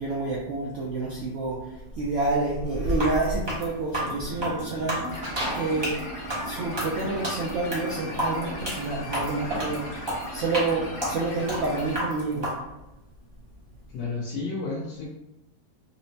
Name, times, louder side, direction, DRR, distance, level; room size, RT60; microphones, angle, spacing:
voice 1, 0.0-5.1 5.5-5.9 6.4-9.9 10.3-12.5, right 2 dB, 80° right, -4 dB, 0.6 m, -28 dB
sound 1, 2.9-12.5, equal, 25° right, 0.5 m, -31 dB
sound 2, 4.0-12.0, equal, 50° left, 1.0 m, -37 dB
sound 3, 5.2-5.8 6.3-9.9, right 1 dB, 65° right, 1.6 m, -37 dB
voice 2, 13.9-15.1, left 3 dB, 85° left, -6 dB, 1.4 m, -31 dB
4.1 x 2.0 x 2.7 m, 0.93 s
omnidirectional pair, 1.8 m